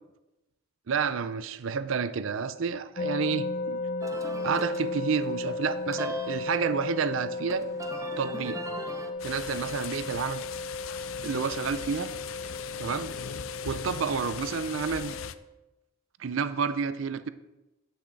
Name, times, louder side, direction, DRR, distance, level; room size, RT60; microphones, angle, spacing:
voice 1, 0.9-3.8 4.4-7.6 8.2-8.6 9.2-10.4 11.2-12.1 12.8-13.1 13.7-15.2 16.2-17.3, right 6 dB, 75° right, 13 dB, 0.5 m, -30 dB
sound 1, 3.0-15.3, left 3 dB, 45° left, 0.7 m, -35 dB
sound 2, 4.0-9.1, right 1 dB, 15° right, 0.7 m, -40 dB
sound 3, 9.2-15.3, left 8 dB, 90° left, 0.5 m, -40 dB
10.5 x 8.8 x 3.9 m, 1.0 s
head